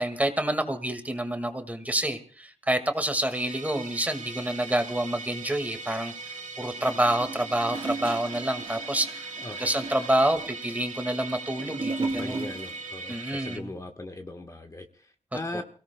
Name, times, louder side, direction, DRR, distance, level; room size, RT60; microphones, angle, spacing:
voice 1, 0.0-6.1 6.6-9.3 9.6-12.5 13.1-13.7, right 1 dB, 15° right, 7 dB, 2.0 m, -28 dB
Musical instrument, 3.3-13.6, right 3 dB, 80° right, 1.8 m, -40 dB
Gurgling / Toilet flush, 6.8-12.9 13.1-13.2, right 3 dB, 45° right, 3.1 m, -36 dB
voice 2, 9.4-9.7 12.0-15.6, left 2 dB, 25° left, 5 dB, 1.4 m, -39 dB
29.0 x 17.0 x 2.3 m, 0.41 s
wide cardioid pair, 90°, 12 cm